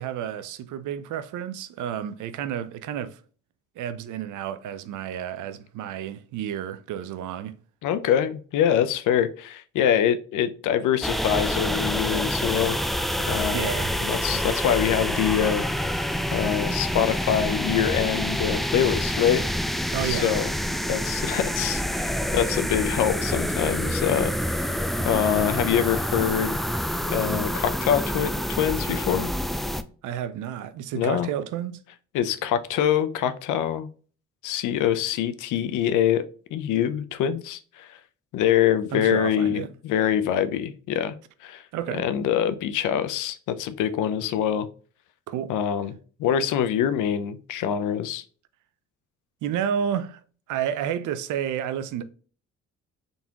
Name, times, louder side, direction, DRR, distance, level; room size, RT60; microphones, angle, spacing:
voice 1, 0.0-3.2 3.8-7.6 13.5-13.9 14.3-14.4 19.9-20.3 30.0-31.8 38.9-39.7 41.7-42.1 45.3-45.5 49.4-50.2 50.5-52.0, right 9 dB, 80° right, 0.6 m, -31 dB
voice 2, 7.8-12.8 13.3-13.7 14.0-15.6 16.3-19.4 20.0-20.5 20.9-24.6 25.0-26.6 27.0-29.3 30.9-31.3 32.1-33.9 34.4-36.2 36.5-38.0 38.3-41.2 41.4-41.6 41.9-44.7 45.5-45.9 46.2-48.2, left 9 dB, 85° left, 0.6 m, -24 dB
sound 1, 11.0-29.8, equal, ahead, 0.3 m, -27 dB
3.9 x 3.6 x 2.8 m
cardioid pair, 90°, 30 cm